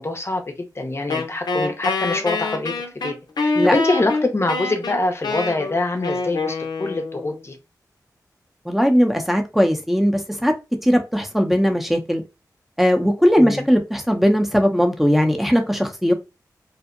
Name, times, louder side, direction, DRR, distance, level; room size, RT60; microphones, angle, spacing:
voice 1, 0.0-2.7 3.0-3.1 3.4-7.6 13.4-13.7, left 2 dB, 35° left, 5 dB, 0.6 m, -24 dB
Wind instrument woodwind instrument, 1.1-7.4, left 3 dB, 80° left, 0.5 m, -25 dB
voice 2, 8.7-10.5 10.8-12.2 12.8-16.1, equal, 5° right, 4 dB, 0.6 m, -18 dB
2.6 x 2.0 x 2.4 m, 0.26 s
cardioid pair, 45°, 7 cm